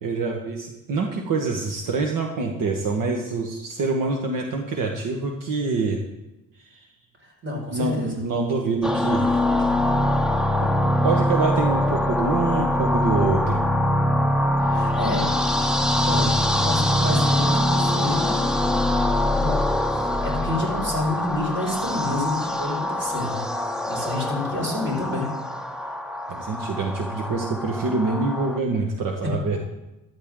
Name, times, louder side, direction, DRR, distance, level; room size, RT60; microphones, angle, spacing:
voice 1, 0.0-6.0 6.6-6.9 7.7-9.4 10.6-10.7 11.0-13.6 26.3-29.6, right 3 dB, 70° right, 2 dB, 1.6 m, -26 dB
voice 2, 7.2-8.2 14.7-15.3 16.1-18.6 19.3-19.6 19.9-23.5 23.8-25.6 29.2-29.6, left 2 dB, 35° right, -2 dB, 5.7 m, -29 dB
sound 1, 8.8-28.6, left 1 dB, ahead, 0.8 m, -23 dB
13.5 x 13.0 x 3.9 m, 0.98 s
cardioid pair, 115°, 34 cm